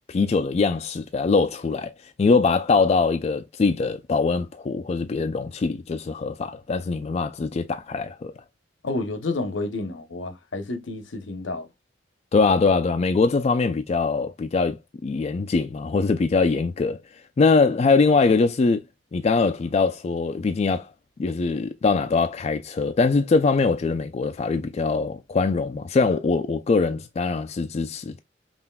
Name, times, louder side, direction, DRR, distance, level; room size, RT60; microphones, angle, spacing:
voice 1, 0.1-1.9 2.2-8.3 12.3-14.8 15.0-17.0 17.4-18.8 19.1-20.9 21.2-28.2, left 4 dB, 35° left, 0.3 m, -22 dB
voice 2, 8.8-11.7, left 2 dB, 85° left, 0.8 m, -30 dB
5.6 x 2.5 x 2.2 m
head